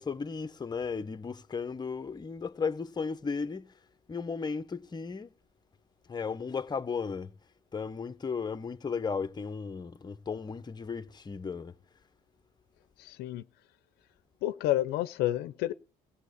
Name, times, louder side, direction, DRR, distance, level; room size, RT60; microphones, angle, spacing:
voice 1, 0.0-3.7 4.1-5.3 6.1-7.3 7.7-11.7, left 5 dB, 25° left, 1.0 m, -35 dB
voice 2, 13.0-13.4 14.4-15.7, left 14 dB, 80° left, 0.7 m, -30 dB
16.5 x 7.2 x 8.4 m
supercardioid pair, 90°, 16 cm